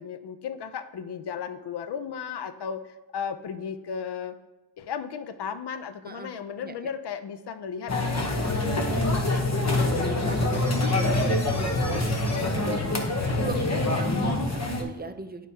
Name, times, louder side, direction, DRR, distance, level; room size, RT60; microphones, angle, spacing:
voice 1, 0.0-4.3 4.8-9.6, left 7 dB, 70° left, 10 dB, 0.6 m, -35 dB
sound 1, 7.9-14.8, left 2 dB, 40° left, 0.9 m, -25 dB
voice 2, 9.8-13.0 13.3-15.5, right 3 dB, 25° right, 8 dB, 0.5 m, -37 dB
11.0 x 4.9 x 2.8 m, 1.1 s
wide cardioid pair, 105°, 41 cm